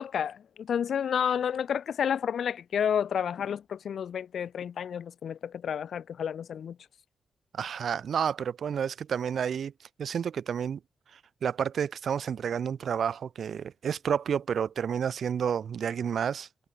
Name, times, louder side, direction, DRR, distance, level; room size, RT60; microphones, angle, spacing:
voice 1, 0.0-6.8, left 8 dB, 65° left, 0.9 m, -30 dB
voice 2, 7.5-9.7 10.0-10.8 11.4-16.7, right 7 dB, 60° right, 0.3 m, -30 dB
wide cardioid pair, 155°, 0 cm